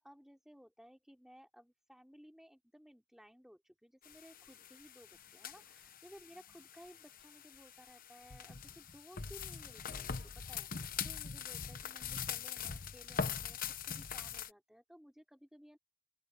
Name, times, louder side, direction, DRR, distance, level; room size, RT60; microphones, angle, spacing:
voice 1, 0.0-13.6 13.8-15.8, equal, ahead, 5.0 m, -59 dB
sound 1, 4.0-14.5, left 6 dB, 40° left, 1.0 m, -43 dB
open air
head